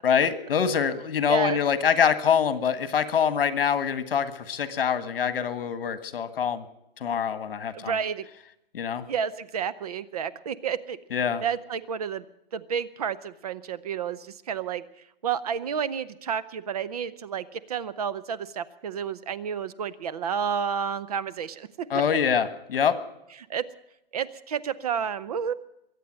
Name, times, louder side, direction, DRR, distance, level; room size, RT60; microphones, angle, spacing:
voice 1, 0.0-6.6 7.0-7.9 8.7-9.1 11.1-11.4 21.9-23.0, left 7 dB, 70° left, 12 dB, 1.6 m, -25 dB
voice 2, 1.3-1.6 7.7-8.3 9.1-11.0 11.4-12.3 12.5-14.8 15.2-22.1 23.5-23.6 24.1-25.5, right 7 dB, 40° right, 15 dB, 0.7 m, -30 dB
23.0 x 8.4 x 7.5 m, 0.83 s
hypercardioid pair, 165°, 29 cm